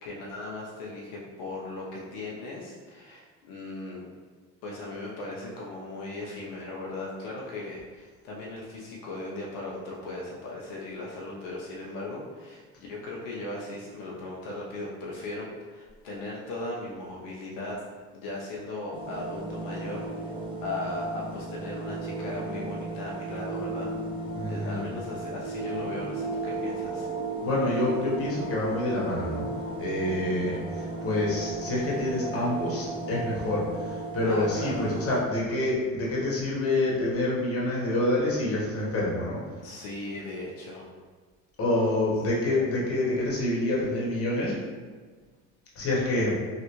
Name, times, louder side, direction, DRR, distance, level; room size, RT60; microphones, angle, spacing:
voice 1, 0.0-4.0 4.6-12.6 12.9-17.8 18.1-23.9 24.5-27.1 30.2-30.6 34.3-34.9 39.6-40.9, left 2 dB, 80° left, -4 dB, 0.7 m, -37 dB
sound 1, 18.9-35.2, right 2 dB, 15° right, 0.8 m, -35 dB
voice 2, 24.3-24.8 27.4-29.5 29.8-39.4 41.6-44.6 45.7-46.4, left 1 dB, 40° left, -5 dB, 1.2 m, -27 dB
3.2 x 2.5 x 2.9 m, 1.4 s
supercardioid pair, 80°, 37 cm